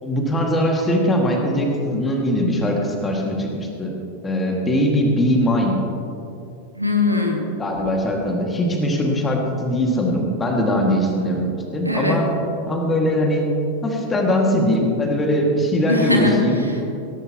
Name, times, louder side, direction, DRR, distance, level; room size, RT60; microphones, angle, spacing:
voice 1, 0.0-3.9 4.2-5.8 7.6-12.3 12.7-13.5 13.8-16.7, equal, 15° left, 0 dB, 2.2 m, -21 dB
voice 2, 6.8-7.5 11.8-12.2 15.9-16.8, left 3 dB, 90° right, 0 dB, 2.2 m, -21 dB
17.0 x 14.5 x 3.0 m, 2.7 s
figure-of-eight pair, 90°, 0 cm